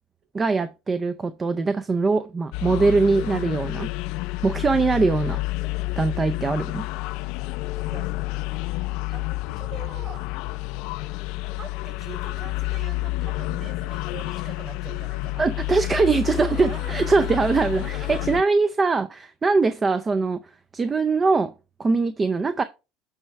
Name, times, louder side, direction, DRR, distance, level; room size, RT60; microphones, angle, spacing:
voice 1, 0.3-3.9 4.4-5.4 6.0-6.9 15.4-21.5 21.8-22.6, right 4 dB, 25° right, 0.5 m, -22 dB
sound 1, 2.5-18.4, left 19 dB, 65° left, 0.4 m, -29 dB
voice 2, 9.6-10.3 11.6-15.4 16.4-18.3, right 6 dB, 45° right, 4.7 m, -42 dB
8.8 x 3.1 x 4.5 m
hypercardioid pair, 75°, 0 cm